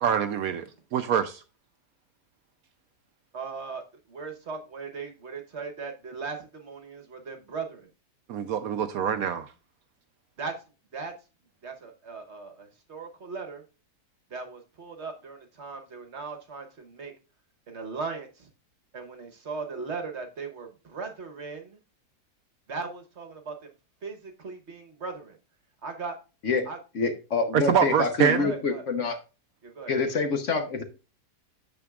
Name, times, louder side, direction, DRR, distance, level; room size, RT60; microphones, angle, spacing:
voice 1, 0.0-0.7 0.9-1.4 8.3-9.5 27.5-28.5, right 8 dB, 70° right, 0.9 m, -25 dB
voice 2, 3.3-3.8 4.1-7.9 10.4-10.5 10.9-11.1 11.6-13.6 14.3-17.1 17.7-18.5 18.9-21.8 22.7-23.7 24.0-25.4 25.8-26.2 26.7-26.8 28.4-28.8 29.6-30.0, right 4 dB, 45° right, 1.2 m, -38 dB
voice 3, 26.9-29.2 29.9-30.8, left 4 dB, 55° left, 1.1 m, -26 dB
8.8 x 6.7 x 2.3 m
omnidirectional pair, 1.8 m